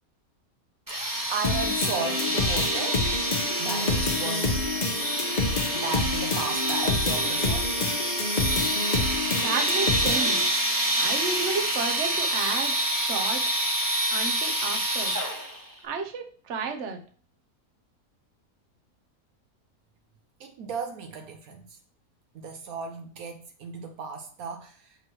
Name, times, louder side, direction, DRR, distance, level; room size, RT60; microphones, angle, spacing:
sound 1, 0.9-15.6, right 1 dB, 15° right, 1.0 m, -27 dB
voice 1, 0.9-3.1 3.6-4.8 5.7-7.8 20.4-21.8 22.3-25.0, right 4 dB, 75° right, 1.2 m, -35 dB
sound 2, 1.4-10.4, left 3 dB, 35° left, 0.7 m, -28 dB
voice 2, 9.4-10.5 11.0-12.7 13.0-13.4 14.1-15.2 15.8-17.0, right 5 dB, 55° right, 1.2 m, -32 dB
6.1 x 5.3 x 3.1 m
omnidirectional pair, 1.5 m